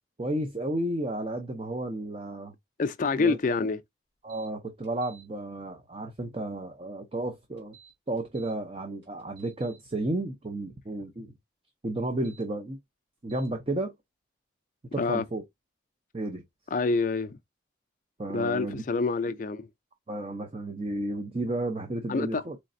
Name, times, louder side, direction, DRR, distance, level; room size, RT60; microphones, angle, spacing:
voice 1, 0.2-2.5 3.2-3.4 4.2-7.8 8.1-11.3 11.8-12.8 13.2-13.9 14.9-15.4 16.1-16.4 18.2-18.8 19.3-19.4 20.1-22.6, right 1 dB, 30° right, 0.6 m, -32 dB
voice 2, 2.8-3.8 15.0-15.2 16.7-17.4 18.3-19.6 22.1-22.4, left 4 dB, 40° left, 0.4 m, -27 dB
sound 1, 4.3-4.5 4.8-5.2 7.6-8.5 9.0-9.8 12.1-12.4 13.3-13.5, right 8 dB, 65° right, 1.6 m, -55 dB
4.0 x 3.2 x 2.5 m
head